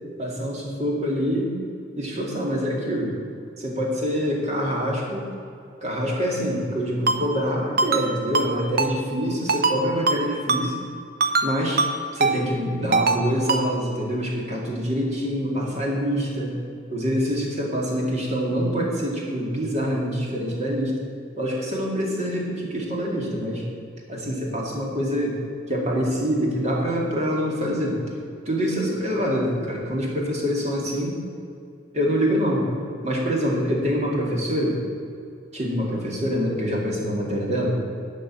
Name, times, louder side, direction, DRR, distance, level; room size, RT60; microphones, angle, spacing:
voice 1, 0.2-1.5 2.0-3.1 3.6-5.3 5.8-10.8 11.4-11.8 12.1-16.6 16.9-21.0 21.4-23.7 24.1-25.4 25.7-28.0 28.5-31.2 31.9-32.7 33.0-34.8 35.5-37.8, equal, 35° right, -2 dB, 2.2 m, -25 dB
Ringtone, 7.1-7.2 7.8-8.1 8.3-8.5 8.8-8.9 9.5-9.8 10.1-10.2 10.5-10.6 11.2-11.5 11.8-11.9 12.2-12.3 12.9-13.2 13.5-13.6, right 3 dB, 50° right, 0.8 m, -21 dB
11.5 x 5.3 x 8.6 m, 2.5 s
head